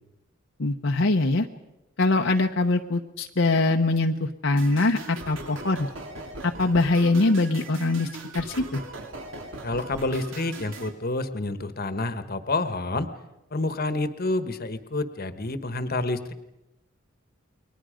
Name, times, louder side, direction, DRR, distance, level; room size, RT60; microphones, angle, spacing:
voice 1, 0.6-1.5 2.0-5.9 6.4-8.1 8.3-8.8, left 2 dB, 65° left, 3 dB, 0.9 m, -23 dB
sound 1, 4.6-10.9, right 2 dB, 70° right, 2.9 m, -40 dB
voice 2, 9.6-13.1 13.5-16.3, left 2 dB, 45° left, 11 dB, 1.3 m, -28 dB
29.5 x 22.5 x 5.1 m, 0.94 s
head